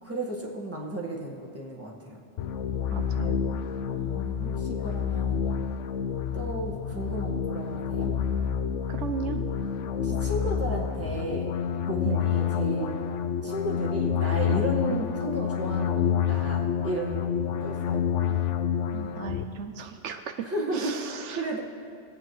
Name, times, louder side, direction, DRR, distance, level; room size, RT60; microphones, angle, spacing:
voice 1, 0.0-2.2 3.9-5.4 6.3-8.2 10.0-11.5 11.8-13.0 13.4-17.3 17.6-18.0 20.4-21.6, right 1 dB, 10° right, -3 dB, 1.6 m, -33 dB
sound 1, 2.4-19.4, left 8 dB, 85° left, 1.0 m, -28 dB
voice 2, 2.9-3.4 8.9-9.4 12.0-12.2 14.9-15.0 18.9-20.3 20.7-21.4, right 6 dB, 80° right, 7 dB, 1.0 m, -35 dB
21.0 x 8.6 x 3.2 m, 2.3 s
omnidirectional pair, 1.2 m